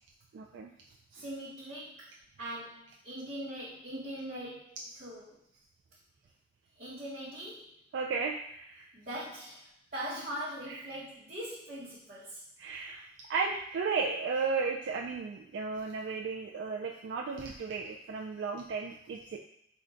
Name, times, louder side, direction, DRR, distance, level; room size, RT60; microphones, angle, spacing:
voice 1, 0.3-0.7 1.1-1.2 7.9-8.9 12.6-19.4, right 4 dB, 75° right, -1 dB, 0.3 m, -34 dB
voice 2, 1.1-2.1 2.4-5.4 6.8-7.7 8.9-9.6 9.9-12.4, right 1 dB, 50° right, -9 dB, 0.9 m, -41 dB
3.6 x 2.2 x 3.8 m, 0.74 s
head